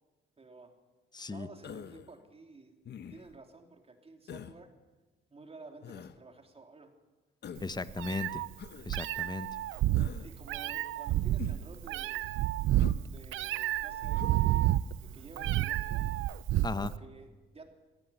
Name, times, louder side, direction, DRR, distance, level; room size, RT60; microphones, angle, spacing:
voice 1, 0.4-0.7 1.3-2.8 3.1-4.7 5.3-6.9 10.2-12.3 13.0-16.0 16.7-17.7, right 3 dB, 30° right, 5 dB, 3.4 m, -52 dB
voice 2, 1.1-1.5 7.6-8.4 8.9-9.5 16.6-16.9, left 3 dB, 20° left, 13 dB, 1.1 m, -36 dB
Human voice, 1.6-2.1 2.9-3.4 4.3-4.6 5.8-6.2 7.4-7.8 8.6-8.9 10.0-10.3 11.4-11.7 12.8-13.0 14.1-14.4 15.4-15.7, left 8 dB, 60° left, 1.2 m, -45 dB
Meow, 7.6-17.0, right 14 dB, 80° right, 0.6 m, -30 dB
17.5 x 17.5 x 9.9 m, 1.2 s
cardioid pair, 90°, 20 cm